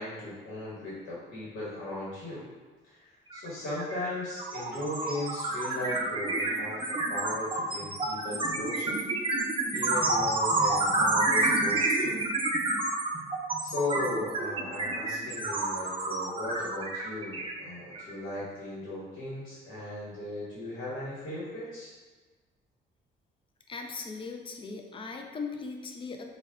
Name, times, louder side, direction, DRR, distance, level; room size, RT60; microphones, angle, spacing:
voice 1, 0.0-2.4 2.8-3.0 3.3-9.0 9.7-12.2 13.6-21.9, left 1 dB, 75° left, -8 dB, 1.1 m, -37 dB
sound 1, 3.3-3.5 3.8-18.1, right 2 dB, 25° right, 0.5 m, -28 dB
voice 2, 23.7-26.2, left 4 dB, 25° left, 3 dB, 0.4 m, -38 dB
4.6 x 2.3 x 2.2 m, 1.4 s
cardioid pair, 90°, 20 cm